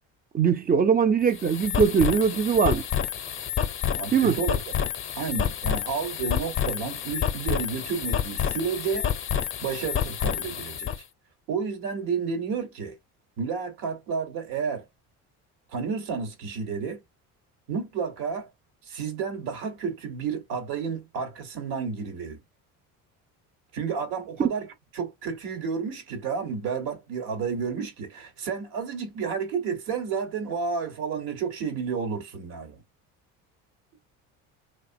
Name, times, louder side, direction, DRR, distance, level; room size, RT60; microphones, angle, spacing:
voice 1, 0.3-2.8 4.1-4.4, right 6 dB, 25° right, 0.4 m, -21 dB
sound 1, 1.2-11.0, left 9 dB, 35° left, 0.6 m, -29 dB
voice 2, 3.9-4.6 5.2-9.1 9.6-10.9 11.5-13.0 13.4-14.8 15.7-17.0 17.7-18.5 18.9-22.4 23.7-24.7 25.0-32.8, right 6 dB, 75° right, 1.2 m, -31 dB
2.8 x 2.2 x 2.6 m
supercardioid pair, 85°, 37 cm